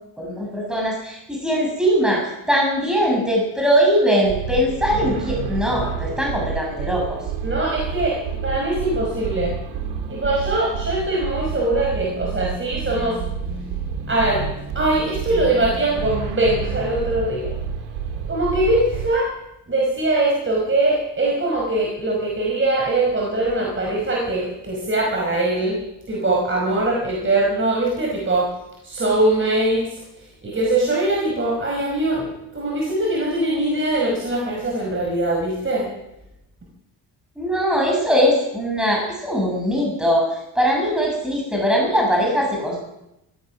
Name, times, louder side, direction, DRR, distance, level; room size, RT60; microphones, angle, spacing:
voice 1, 0.2-7.2 37.4-42.8, equal, ahead, -2 dB, 7.2 m, -21 dB
sound 1, 4.2-19.1, right 6 dB, 90° right, 2.5 m, -29 dB
voice 2, 7.4-8.2 8.4-9.5 10.1-13.2 14.1-14.5 14.7-17.5 18.3-19.3 19.7-25.8 26.1-28.5 28.8-29.8 30.4-35.9, right 2 dB, 30° right, -2 dB, 5.3 m, -22 dB
17.0 x 13.5 x 6.1 m, 0.87 s
supercardioid pair, 75°, 41 cm